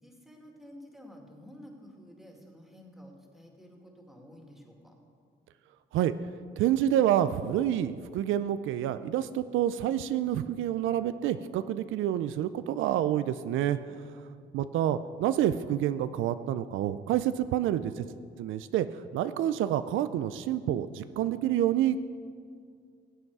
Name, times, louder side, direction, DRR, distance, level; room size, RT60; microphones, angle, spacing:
voice 1, 0.0-4.9 13.9-14.3, equal, ahead, 1 dB, 2.2 m, -51 dB
voice 2, 6.6-14.0 14.5-18.1 18.4-22.0, right 11 dB, 80° right, 13 dB, 0.4 m, -28 dB
17.5 x 8.0 x 4.7 m, 2.2 s
cardioid pair, 90°, 20 cm